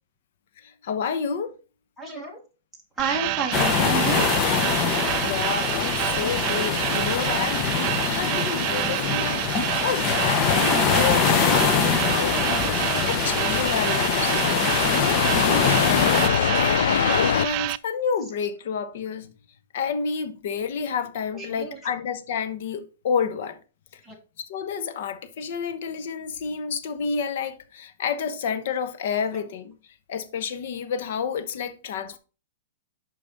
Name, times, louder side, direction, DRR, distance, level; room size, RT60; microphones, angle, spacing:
voice 1, 0.6-1.5 4.9-9.4 9.8-16.1 16.6-19.3 19.7-23.6 24.5-29.7 30.1-32.2, left 6 dB, 55° left, 1.0 m, -30 dB
voice 2, 2.0-2.4 3.0-4.3 7.1-7.6 8.0-8.4 14.5-14.7 16.5-16.9 21.3-21.9 24.0-24.2, right 4 dB, 5° right, 1.8 m, -32 dB
sound 1, 3.0-17.8, right 18 dB, 35° right, 0.3 m, -28 dB
sound 2, 3.5-16.3, left 6 dB, 25° left, 1.0 m, -24 dB
sound 3, 12.6-17.5, left 9 dB, 75° left, 0.3 m, -25 dB
6.9 x 5.2 x 4.0 m
hypercardioid pair, 160°, 0 cm